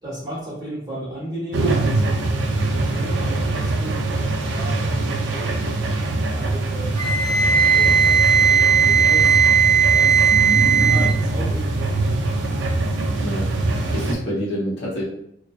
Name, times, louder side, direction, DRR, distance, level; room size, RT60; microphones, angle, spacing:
voice 1, 0.0-5.9 6.3-6.9 7.7-9.4 9.7-10.3 10.7-12.9, right 1 dB, 20° right, -9 dB, 1.1 m, -34 dB
sound 1, 1.5-14.1, right 2 dB, 75° right, 0.4 m, -23 dB
Wind instrument woodwind instrument, 6.9-11.1, right 7 dB, 20° left, 0.6 m, -16 dB
voice 2, 13.2-15.0, equal, 65° left, -7 dB, 0.7 m, -28 dB
2.6 x 2.1 x 2.2 m, 0.75 s
head